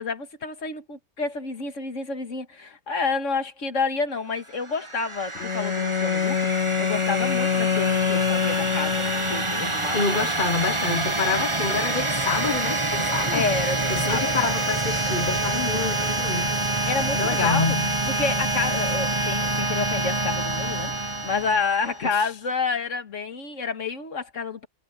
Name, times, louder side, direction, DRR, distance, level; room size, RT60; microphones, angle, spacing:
voice 1, 0.0-10.3 13.3-14.3 16.9-17.8 18.1-24.7, left 4 dB, 85° left, 2.2 m, -29 dB
sound 1, 4.5-22.2, right 2 dB, 25° right, 1.3 m, -27 dB
Bowed string instrument, 5.4-9.8, left 7 dB, 70° left, 1.1 m, -25 dB
voice 2, 9.9-13.5 13.9-16.5 17.1-17.9 22.1-22.3, left 4 dB, 45° left, 1.4 m, -27 dB
omnidirectional pair, 1.3 m